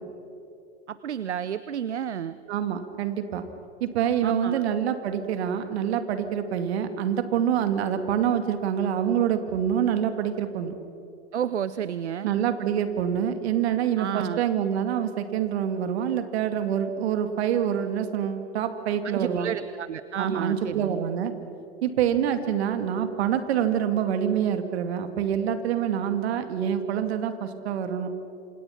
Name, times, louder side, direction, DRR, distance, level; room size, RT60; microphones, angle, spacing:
voice 1, 0.9-2.4 4.2-4.6 11.3-12.3 14.0-14.4 19.0-21.0, right 9 dB, 90° right, 15 dB, 0.8 m, -31 dB
voice 2, 2.5-3.4 3.8-10.8 12.2-19.5 20.2-21.3 21.8-28.1, right 9 dB, 70° right, 9 dB, 2.4 m, -26 dB
27.0 x 27.0 x 5.9 m, 2.8 s
hypercardioid pair, 95°, 33 cm